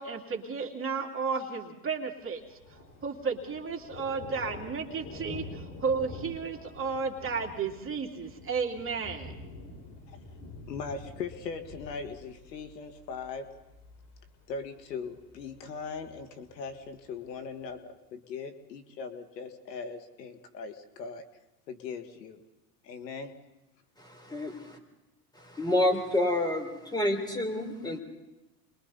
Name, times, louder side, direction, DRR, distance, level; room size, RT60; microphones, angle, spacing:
voice 1, 0.0-2.4 3.0-9.4, right 5 dB, 25° right, 0 dB, 2.9 m, -33 dB
Thunder, 2.2-17.8, left 3 dB, 60° left, 7.2 m, -47 dB
voice 2, 10.7-13.6 14.5-21.2 21.7-22.4 22.8-23.3, left 5 dB, 90° left, 8 dB, 2.0 m, -40 dB
voice 3, 24.0-24.8 25.4-28.0, left 1 dB, 10° left, 4 dB, 3.8 m, -29 dB
29.0 x 22.5 x 4.2 m, 0.96 s
hypercardioid pair, 105°, 48 cm